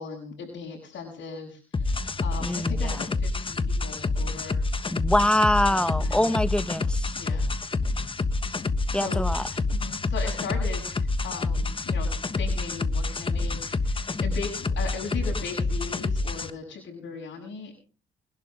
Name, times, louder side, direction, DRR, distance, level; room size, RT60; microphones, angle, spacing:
voice 1, 0.0-4.6 5.7-6.3 7.1-7.5 8.5-8.6 8.9-9.3 9.7-17.7, left 5 dB, 65° left, 7.4 m, -38 dB
sound 1, 1.7-16.5, left 3 dB, 25° left, 1.3 m, -28 dB
voice 2, 2.4-3.0 4.9-7.1 8.9-9.4, left 1 dB, 5° left, 1.4 m, -24 dB
22.5 x 12.0 x 3.9 m
cardioid pair, 90°, 20 cm